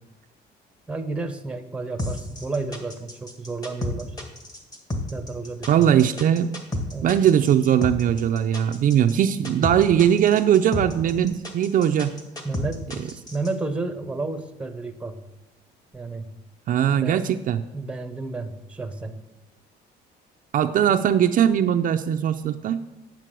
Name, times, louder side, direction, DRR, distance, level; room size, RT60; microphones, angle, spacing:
voice 1, 0.9-4.1 5.1-6.1 6.9-7.1 12.4-15.2 15.9-16.3 16.9-17.2 17.7-19.2, right 3 dB, 5° right, 7 dB, 0.8 m, -31 dB
sound 1, 2.0-13.5, left 1 dB, 20° left, 1.5 m, -31 dB
voice 2, 5.7-6.5 7.0-12.1 16.7-17.6 20.5-22.8, right 9 dB, 50° right, 7 dB, 0.5 m, -20 dB
9.1 x 7.3 x 6.1 m, 0.97 s
cardioid pair, 145°, 18 cm